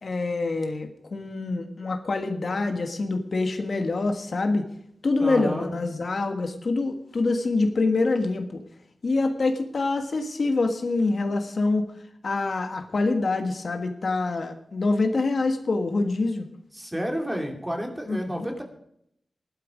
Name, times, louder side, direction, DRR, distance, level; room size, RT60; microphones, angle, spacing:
voice 1, 0.0-4.6 5.0-8.6 9.0-11.9 12.2-16.4 18.1-18.5, left 3 dB, 60° left, 5 dB, 1.5 m, -25 dB
voice 2, 5.2-5.7 16.7-18.6, equal, 10° right, 3 dB, 2.7 m, -30 dB
16.0 x 12.0 x 5.2 m, 0.71 s
wide cardioid pair, 110°, 0 cm